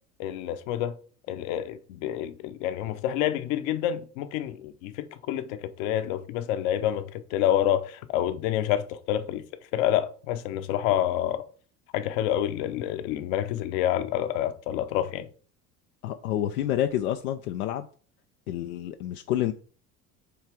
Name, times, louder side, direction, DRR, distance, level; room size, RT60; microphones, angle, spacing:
voice 1, 0.2-0.9 1.3-9.4 9.7-11.4 11.9-15.3, left 11 dB, 65° left, 0.9 m, -28 dB
voice 2, 16.0-17.9 18.5-19.5, left 12 dB, 85° left, 0.6 m, -28 dB
8.0 x 3.2 x 4.8 m
hypercardioid pair, 70°, 44 cm